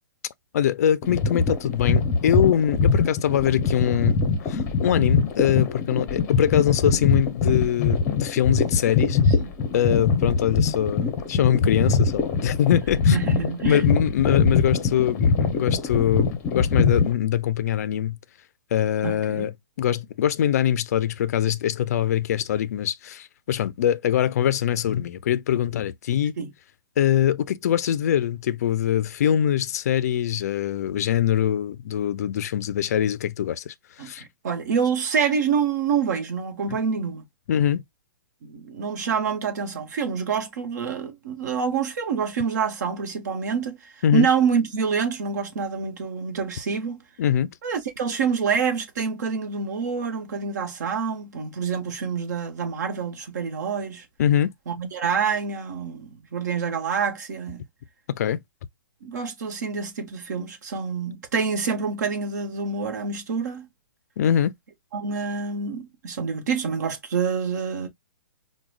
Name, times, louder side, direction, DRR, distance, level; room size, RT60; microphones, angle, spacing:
voice 1, 0.5-9.2 9.7-13.2 13.6-18.2 18.7-26.3 27.0-34.2 37.5-37.8 44.0-44.3 47.2-47.5 54.2-54.5 58.1-58.4 64.2-64.5, left 10 dB, 50° left, 0.4 m, -23 dB
sound 1, 1.0-17.1, left 4 dB, 20° left, 0.7 m, -23 dB
voice 2, 13.1-13.9 19.0-19.5 26.4-26.5 34.0-37.2 38.4-43.8 44.1-47.0 47.6-54.0 54.7-57.6 59.0-63.7 64.9-67.9, right 6 dB, 55° right, 1.0 m, -27 dB
4.8 x 2.2 x 2.3 m
hypercardioid pair, 165°, 11 cm